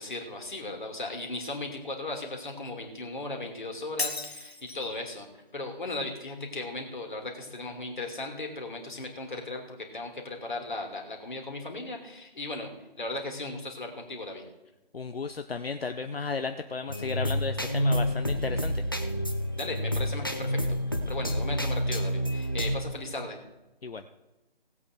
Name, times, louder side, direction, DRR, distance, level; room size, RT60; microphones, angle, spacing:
voice 1, 0.0-5.3 5.5-12.7 13.0-14.4 19.6-20.6 20.9-23.4, left 2 dB, 50° left, 2 dB, 2.8 m, -37 dB
Shatter, 4.0-5.0, left 3 dB, 85° left, 1.4 m, -34 dB
voice 2, 14.9-18.8 23.8-24.0, left 4 dB, 70° left, 8 dB, 0.8 m, -34 dB
sound 1, 16.9-22.8, equal, 20° left, 0.6 m, -28 dB
18.0 x 8.3 x 4.6 m, 1.0 s
figure-of-eight pair, 160°, 31 cm